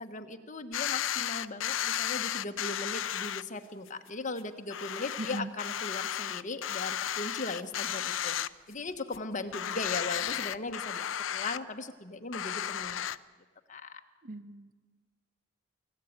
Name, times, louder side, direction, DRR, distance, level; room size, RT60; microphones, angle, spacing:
voice 1, 0.0-8.4 8.7-13.2 13.7-14.0, left 3 dB, 40° left, 6 dB, 1.3 m, -38 dB
sound 1, 0.7-3.4 3.9-4.0 4.4-4.5 4.7-8.9 9.1-9.2 9.5-11.6 12.3-13.2, left 10 dB, 80° left, 0.6 m, -34 dB
voice 2, 5.2-5.5 14.2-14.8, right 2 dB, 45° right, 13 dB, 0.9 m, -39 dB
25.0 x 14.5 x 8.9 m, 1.4 s
head